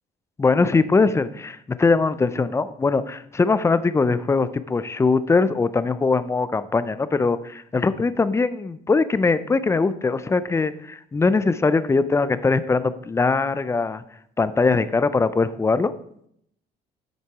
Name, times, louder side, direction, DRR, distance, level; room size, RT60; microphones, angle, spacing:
voice 1, 0.4-14.0 14.4-15.9, left 4 dB, 15° left, 14 dB, 0.4 m, -21 dB
7.6 x 6.8 x 4.7 m, 0.72 s
cardioid pair, 110°, 17 cm